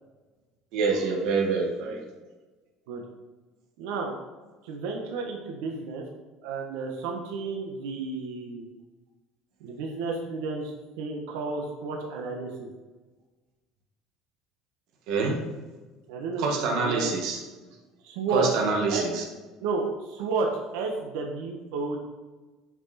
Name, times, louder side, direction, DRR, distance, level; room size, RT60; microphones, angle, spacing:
voice 1, 0.7-2.0 15.1-15.4 16.4-17.4 18.3-19.2, right 4 dB, 55° right, 0 dB, 1.9 m, -26 dB
voice 2, 3.8-4.2 4.6-6.0 6.4-8.7 9.6-12.7 16.1-17.1 18.0-18.6 18.9-19.1 19.6-20.5 20.7-22.0, right 4 dB, 90° right, 1 dB, 1.5 m, -31 dB
9.1 x 6.3 x 4.4 m, 1.3 s
cardioid pair, 175°, 0 cm